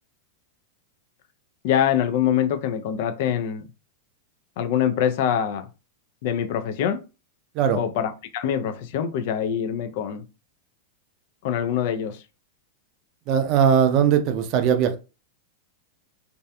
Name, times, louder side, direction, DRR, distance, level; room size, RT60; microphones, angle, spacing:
voice 1, 1.6-3.6 4.6-5.7 6.2-7.0 7.7-10.2 11.4-12.2, left 9 dB, 60° left, 0.4 m, -24 dB
voice 2, 13.3-15.0, right 8 dB, 45° right, 0.4 m, -19 dB
2.6 x 2.3 x 2.2 m
hypercardioid pair, 120°, 0 cm